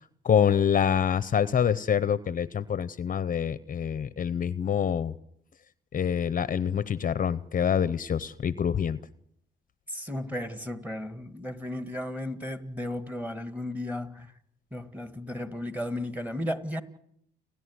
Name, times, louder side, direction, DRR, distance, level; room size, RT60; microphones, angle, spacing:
voice 1, 0.2-5.1 5.9-9.0, left 8 dB, 45° left, 16 dB, 0.8 m, -26 dB
voice 2, 9.9-14.3 14.7-16.8, left 1 dB, 10° right, 10 dB, 2.0 m, -34 dB
30.0 x 11.0 x 9.6 m, 0.72 s
cardioid pair, 90°, 20 cm